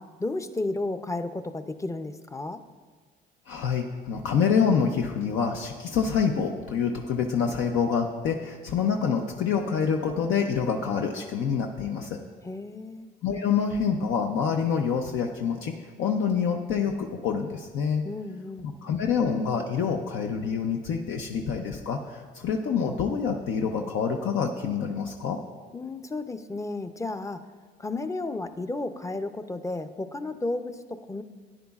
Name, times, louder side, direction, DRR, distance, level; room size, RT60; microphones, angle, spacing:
voice 1, 0.0-2.6 12.4-13.1 18.0-18.6 25.7-27.4 27.8-31.2, left 2 dB, 15° left, 9 dB, 0.5 m, -33 dB
voice 2, 3.5-12.2 13.2-15.7 16.0-18.0 18.6-25.4, left 6 dB, 80° left, 2 dB, 0.6 m, -26 dB
13.5 x 9.7 x 2.4 m, 1.5 s
cardioid pair, 90°, 20 cm